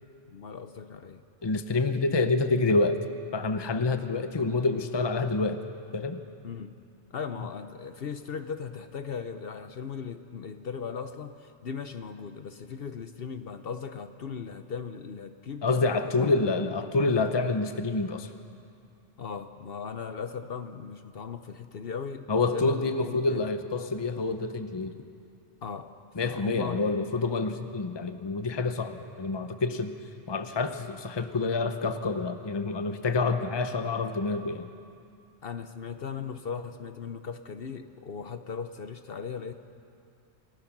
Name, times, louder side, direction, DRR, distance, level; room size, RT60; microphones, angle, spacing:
voice 1, 0.3-1.2 6.4-6.7 7.1-16.3 19.2-23.4 25.6-26.8 35.4-39.5, left 6 dB, 60° left, 9 dB, 0.9 m, -38 dB
voice 2, 1.4-3.0 3.3-5.6 5.9-6.2 15.6-18.3 22.3-24.9 26.2-29.9 30.3-34.7, left 3 dB, 25° left, 8 dB, 0.8 m, -27 dB
27.5 x 15.5 x 6.0 m, 2.5 s
omnidirectional pair, 1.2 m